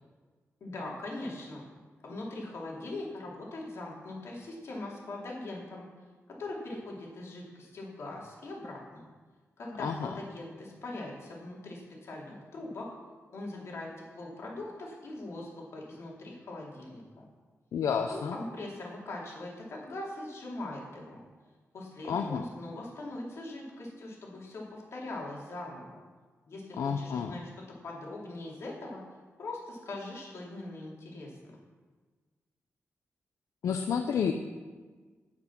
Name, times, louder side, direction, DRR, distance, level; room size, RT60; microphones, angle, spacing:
voice 1, 0.6-1.7 2.0-5.9 6.4-9.0 9.6-12.9 13.3-17.2 18.1-21.2 21.7-26.0 26.5-29.0 29.4-31.6, left 2 dB, 60° left, -3 dB, 3.4 m, -41 dB
voice 2, 9.8-10.1 17.7-18.3 22.1-22.4 26.7-27.3 33.6-34.3, left 7 dB, 85° left, 5 dB, 0.6 m, -30 dB
17.0 x 6.1 x 6.0 m, 1.4 s
wide cardioid pair, 175°, 5 cm